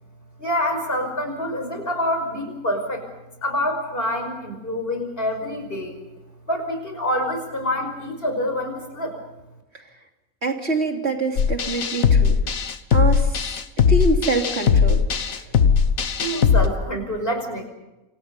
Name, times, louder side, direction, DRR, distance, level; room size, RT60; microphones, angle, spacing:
voice 1, 0.4-3.0 3.4-6.0 6.5-9.2 16.2-17.6, left 1 dB, 40° left, 5 dB, 5.9 m, -26 dB
voice 2, 10.4-12.4 12.9-13.4 13.9-15.4, right 3 dB, 45° right, 3 dB, 3.4 m, -25 dB
sound 1, 11.4-16.7, left 6 dB, 70° left, 1.6 m, -19 dB
29.0 x 26.0 x 5.5 m, 1.0 s
omnidirectional pair, 1.5 m